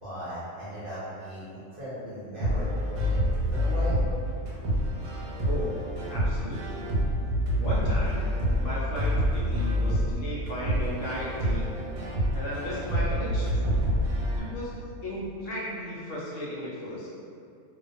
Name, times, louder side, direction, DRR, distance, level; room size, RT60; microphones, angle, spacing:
voice 1, 0.0-4.0, equal, 55° right, -12 dB, 0.6 m, -38 dB
sound 1, 2.4-14.4, equal, 85° right, 1.1 m, -27 dB
voice 2, 6.1-6.8 7.6-8.3 8.6-11.7 12.3-13.6 14.4-14.7 15.0-17.1, equal, 70° left, -6 dB, 0.9 m, -35 dB
2.4 x 2.3 x 2.4 m, 2.5 s
omnidirectional pair, 1.5 m